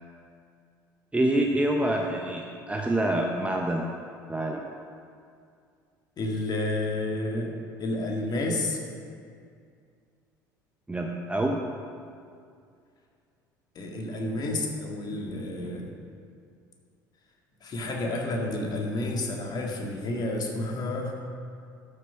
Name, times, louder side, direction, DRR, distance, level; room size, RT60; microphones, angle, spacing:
voice 1, 1.1-3.9 4.3-4.6 10.9-11.6, right 1 dB, 10° right, 1 dB, 1.0 m, -26 dB
voice 2, 6.2-8.8 13.8-15.9 17.6-21.2, left 2 dB, 40° left, 1 dB, 1.9 m, -30 dB
12.0 x 6.5 x 5.7 m, 2.3 s
figure-of-eight pair, 60°, 11 cm